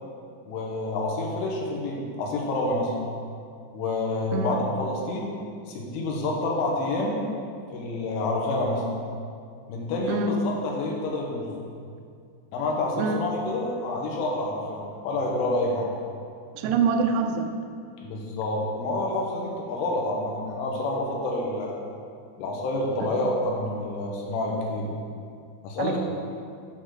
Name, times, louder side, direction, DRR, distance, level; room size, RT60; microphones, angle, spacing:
voice 1, 0.5-2.9 3.7-5.3 5.7-7.3 7.7-8.8 9.7-11.5 12.5-15.9 18.0-21.8 22.4-25.0 25.6-26.0, left 2 dB, 85° left, -2 dB, 3.6 m, -28 dB
voice 2, 16.5-17.5 25.8-26.0, right 5 dB, 90° right, 5 dB, 2.3 m, -25 dB
8.7 x 3.9 x 6.2 m, 2.3 s
omnidirectional pair, 5.5 m